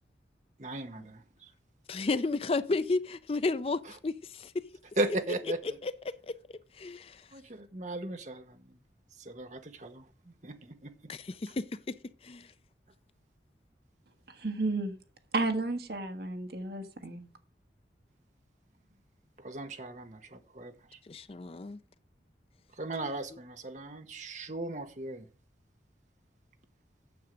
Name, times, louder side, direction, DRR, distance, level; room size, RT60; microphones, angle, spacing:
voice 1, 0.6-1.2 5.0-5.8 7.3-8.6 9.2-10.9 19.4-21.0 22.8-25.3, right 2 dB, 40° right, 1.0 m, -37 dB
voice 2, 1.9-4.6 5.8-5.9 6.8-7.3 11.1-11.9 12.2-12.5 21.1-21.8, left 3 dB, 30° left, 0.4 m, -32 dB
voice 3, 14.4-15.0 15.3-17.2, right 2 dB, 60° right, 1.3 m, -32 dB
9.4 x 7.1 x 5.2 m
head